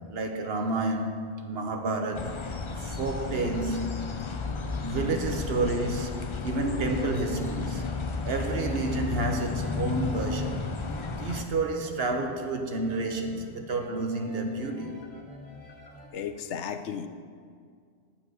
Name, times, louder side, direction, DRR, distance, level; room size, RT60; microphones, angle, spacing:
voice 1, 0.1-2.4 2.8-4.1 4.8-6.2 6.4-7.9 8.3-10.7 11.1-15.0, right 2 dB, 60° right, 1.2 m, -30 dB
sound 1, 2.1-11.4, left 4 dB, 35° left, 0.5 m, -33 dB
sound 2, 5.4-16.1, equal, 70° left, 1.9 m, -48 dB
voice 2, 16.1-17.1, left 7 dB, 85° left, 1.0 m, -34 dB
10.5 x 7.2 x 6.2 m
omnidirectional pair, 1.2 m